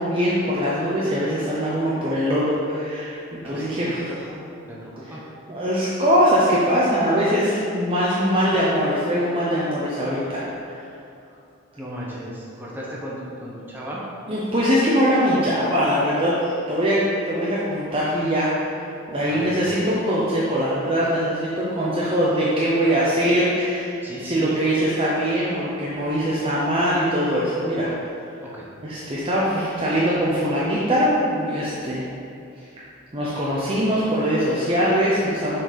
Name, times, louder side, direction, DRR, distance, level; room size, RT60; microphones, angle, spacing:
voice 1, 0.0-4.1 5.5-10.8 14.3-17.0 17.3-23.9 24.2-27.9 28.8-32.0 32.6-32.7 33.1-35.6, equal, 25° right, -7 dB, 0.7 m, -22 dB
voice 2, 3.4-3.9 4.3-5.2 11.7-14.0 19.3-19.8 24.0-24.6 28.4-28.7, equal, 10° right, -6 dB, 1.0 m, -36 dB
6.3 x 4.2 x 5.0 m, 2.5 s
head